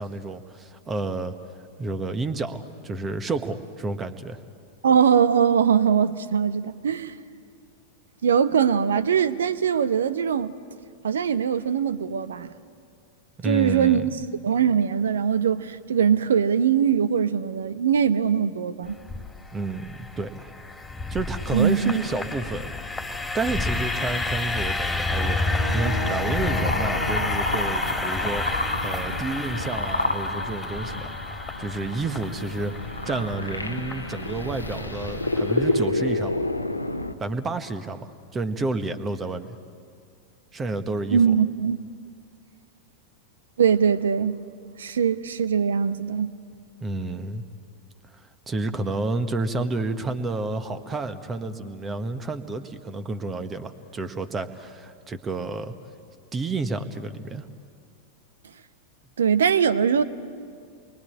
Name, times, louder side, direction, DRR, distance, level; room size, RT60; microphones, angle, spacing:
voice 1, 0.0-1.3 1.8-4.4 13.4-14.1 19.5-20.5 21.1-22.7 23.3-31.1 31.6-32.7 33.0-36.3 37.2-39.5 40.5-41.2 46.8-47.4 48.5-55.7 56.3-57.5, right 3 dB, 20° right, 1.4 m, -30 dB
voice 2, 4.8-7.2 8.2-10.5 11.0-12.5 13.4-14.1 14.4-19.0 21.5-22.0 41.1-41.8 43.6-44.4 44.8-46.4 59.2-60.0, right 7 dB, 65° right, 0.9 m, -21 dB
sound 1, 18.9-35.8, left 2 dB, 10° left, 2.6 m, -30 dB
sound 2, 25.2-37.1, left 1 dB, 85° left, 1.1 m, -29 dB
29.5 x 23.5 x 8.6 m
figure-of-eight pair, 90°, 0 cm